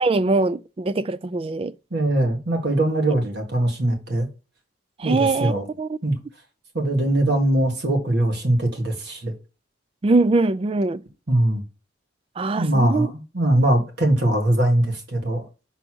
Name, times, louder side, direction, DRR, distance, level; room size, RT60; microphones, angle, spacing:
voice 1, 0.0-1.7 5.0-5.5 5.8-6.0 10.0-11.0 12.4-13.1, right 3 dB, 25° right, 0.3 m, -22 dB
voice 2, 1.9-4.3 5.0-5.6 6.0-6.1 6.7-9.3 11.3-11.6 12.6-15.5, right 1 dB, 55° right, 1.8 m, -21 dB
6.0 x 4.0 x 6.2 m
head